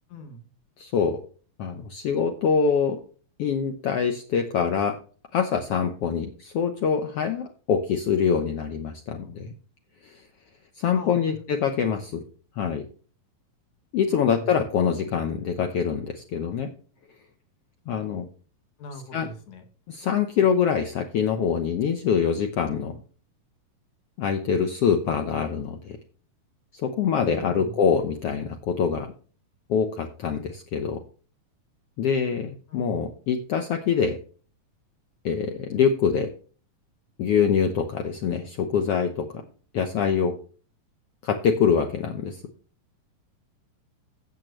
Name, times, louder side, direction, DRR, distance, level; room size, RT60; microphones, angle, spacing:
voice 1, 0.1-0.5 10.9-11.4 14.1-14.5 18.8-19.6 27.3-27.8 32.7-33.0, left 1 dB, 55° left, 6 dB, 2.8 m, -41 dB
voice 2, 0.8-1.2 1.6-3.0 3.4-5.0 5.3-9.5 10.0-10.2 10.8-12.2 12.6-12.8 13.9-16.7 17.9-18.3 19.1-19.3 19.9-23.0 24.2-26.0 26.8-29.1 29.7-31.0 32.0-34.2 35.2-36.3 37.2-39.4 39.7-40.4 41.2-42.4, left 7 dB, 75° left, 5 dB, 1.4 m, -24 dB
15.5 x 7.5 x 3.2 m, 0.40 s
omnidirectional pair, 4.1 m